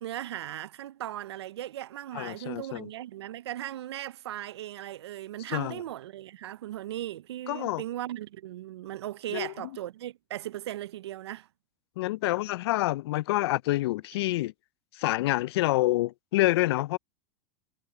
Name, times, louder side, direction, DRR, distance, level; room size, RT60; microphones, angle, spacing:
voice 1, 0.0-11.5, right 13 dB, 85° right, 0.5 m, -37 dB
voice 2, 2.1-2.9 5.5-5.8 7.5-7.8 9.3-9.5 12.0-14.5 14.9-17.0, left 18 dB, 75° left, 0.4 m, -27 dB
hypercardioid pair, 105°, 13 cm